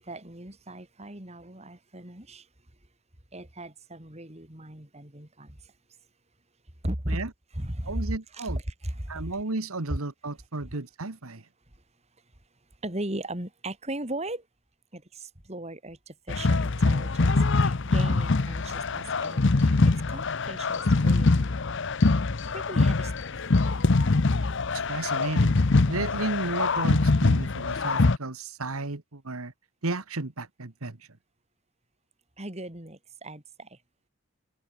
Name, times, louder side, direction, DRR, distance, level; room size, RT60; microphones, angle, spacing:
voice 1, 0.0-2.5 3.3-5.7 6.8-7.2 7.5-9.4 9.9-10.0 10.6-10.7 12.8-14.5 14.9-19.7 20.1-21.6 22.5-23.1 32.4-33.8, right 1 dB, 30° right, 3.1 m, -37 dB
voice 2, 7.9-8.6 9.1-11.4 24.9-25.6 25.9-29.5 29.8-31.0, right 2 dB, 80° right, 1.7 m, -33 dB
sound 1, 16.3-28.2, left 3 dB, 55° left, 0.8 m, -23 dB
open air
head